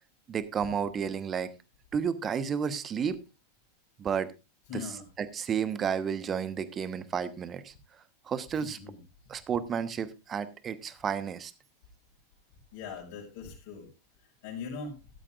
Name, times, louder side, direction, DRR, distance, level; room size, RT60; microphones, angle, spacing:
voice 1, 0.3-1.5 1.9-3.2 4.0-4.3 4.7-4.8 5.2-7.7 8.3-8.8 9.3-11.5, right 7 dB, 25° right, 14 dB, 1.0 m, -31 dB
voice 2, 4.7-5.1 8.5-9.0 12.7-13.9 14.4-15.0, left 5 dB, 50° left, -3 dB, 5.1 m, -40 dB
14.5 x 12.5 x 2.4 m, 0.27 s
figure-of-eight pair, 90°, 0 cm